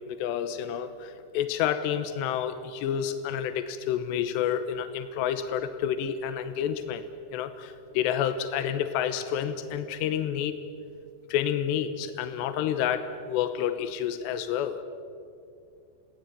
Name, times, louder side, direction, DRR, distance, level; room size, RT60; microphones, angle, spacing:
voice 1, 0.0-7.0 7.3-10.5 11.3-14.8, left 9 dB, 85° left, 9 dB, 3.1 m, -29 dB
29.0 x 18.0 x 9.0 m, 2.4 s
omnidirectional pair, 5.0 m